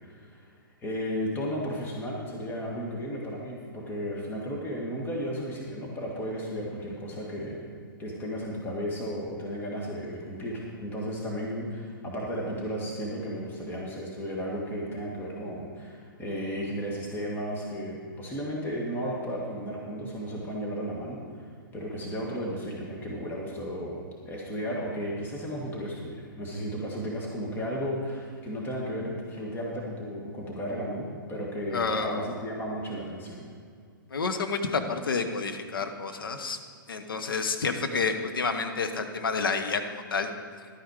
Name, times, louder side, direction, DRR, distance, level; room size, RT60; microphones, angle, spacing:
voice 1, 0.0-0.5 0.8-7.6 8.0-24.0 24.2-33.5, equal, 15° left, -3 dB, 1.9 m, -34 dB
voice 2, 31.7-32.3 34.1-36.6 36.9-40.3, left 4 dB, 75° left, 6 dB, 1.1 m, -29 dB
12.0 x 9.0 x 4.9 m, 2.1 s
figure-of-eight pair, 115°, 12 cm